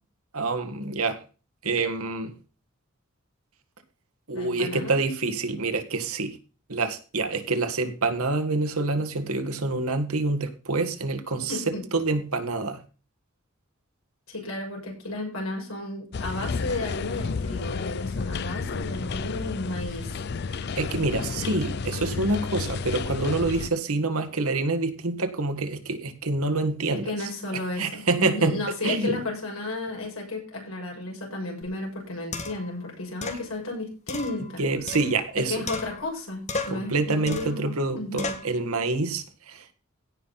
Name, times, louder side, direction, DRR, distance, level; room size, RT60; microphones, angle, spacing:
voice 1, 0.3-1.2 1.6-2.3 4.3-6.4 6.7-11.6 11.9-12.8 20.8-27.1 27.8-28.6 28.8-29.2 34.6-35.6 36.7-39.7, right 3 dB, 85° right, 7 dB, 1.7 m, -27 dB
voice 2, 4.3-5.0 11.5-11.8 14.3-20.2 27.0-34.6 35.4-38.4, left 2 dB, 80° left, -1 dB, 6.5 m, -33 dB
sound 1, 16.1-23.7, left 4 dB, 50° left, 0.4 m, -31 dB
sound 2, 31.6-31.7 32.3-32.7 33.2-33.4 34.1-35.4 35.7-36.2 36.5-36.9 37.3-37.6 38.2-38.5, left 3 dB, 30° left, 1.6 m, -34 dB
16.5 x 5.9 x 4.1 m, 0.36 s
head